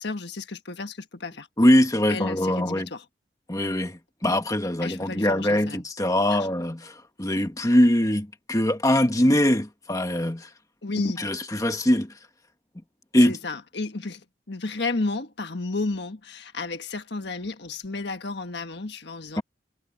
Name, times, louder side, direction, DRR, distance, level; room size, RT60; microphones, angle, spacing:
voice 1, 0.0-1.5 2.1-3.0 4.8-5.9 6.3-6.5 10.8-11.3 13.2-19.4, left 3 dB, 60° left, 1.6 m, -32 dB
voice 2, 1.6-2.9 3.5-10.5 11.2-12.1 13.1-13.4 19.4-19.5, left 1 dB, 20° left, 1.6 m, -22 dB
head